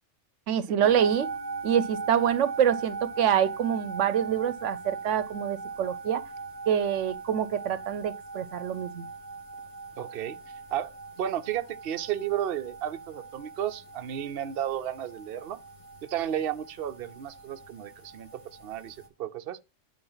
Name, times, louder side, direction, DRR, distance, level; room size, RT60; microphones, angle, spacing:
voice 1, 0.5-1.3 1.6-6.2 6.7-9.1, right 9 dB, 75° right, 1.0 m, -26 dB
sound 1, 0.8-19.1, right 4 dB, 25° left, 1.4 m, -40 dB
voice 2, 10.0-10.4 10.7-10.9 11.2-15.6 16.0-18.3 18.6-19.6, right 10 dB, 55° right, 0.8 m, -33 dB
9.9 x 3.6 x 5.6 m
omnidirectional pair, 1.3 m